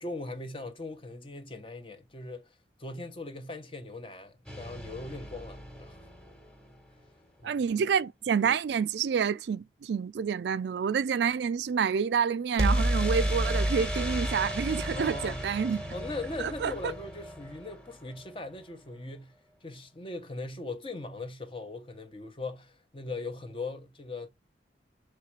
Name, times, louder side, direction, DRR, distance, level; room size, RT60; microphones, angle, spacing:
voice 1, 0.0-6.0 7.4-7.6 14.9-15.5 15.9-19.3 19.6-24.3, left 2 dB, 30° left, 0.9 m, -40 dB
sound 1, 4.5-6.5 12.6-18.4, right 1 dB, 5° left, 1.3 m, -32 dB
voice 2, 7.4-15.8 16.4-16.9, right 6 dB, 75° right, 0.3 m, -28 dB
6.6 x 3.2 x 4.7 m
head